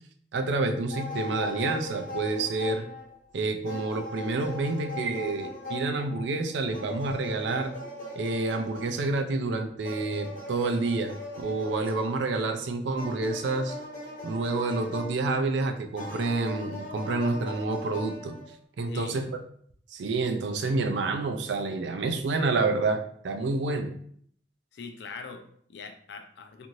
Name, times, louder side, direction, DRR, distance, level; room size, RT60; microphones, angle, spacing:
voice 1, 0.3-2.9 3.3-7.8 8.2-13.8 14.2-18.4 18.8-19.3 19.9-23.9, right 3 dB, 75° right, 6 dB, 0.4 m, -28 dB
sound 1, 0.9-3.3 3.6-9.3 9.8-12.4 12.9-15.6 15.9-18.5, left 1 dB, 45° left, 0.8 m, -39 dB
voice 2, 18.8-19.3 24.7-26.7, left 4 dB, 65° left, 6 dB, 0.4 m, -42 dB
2.6 x 2.6 x 3.0 m, 0.62 s
head